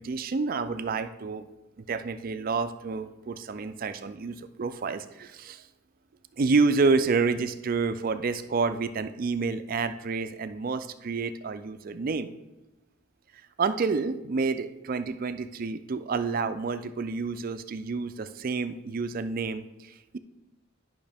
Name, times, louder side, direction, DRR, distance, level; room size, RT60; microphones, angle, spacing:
voice 1, 0.0-1.5 1.9-5.6 6.4-12.3 13.6-20.2, right 4 dB, 40° right, 10 dB, 0.4 m, -29 dB
11.0 x 5.7 x 3.4 m, 1.0 s
head